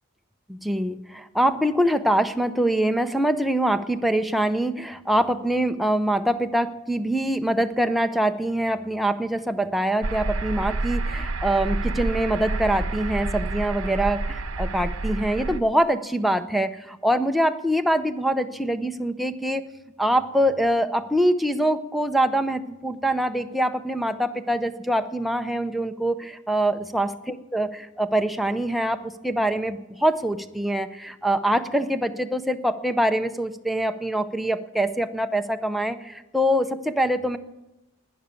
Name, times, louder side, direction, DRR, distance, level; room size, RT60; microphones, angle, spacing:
voice 1, 0.5-19.6 20.0-27.1 27.5-27.7 28.0-37.4, right 1 dB, ahead, 7 dB, 0.6 m, -24 dB
sound 1, 10.0-15.6, right 2 dB, 70° right, 0.8 m, -28 dB
12.0 x 10.0 x 8.3 m, 0.99 s
head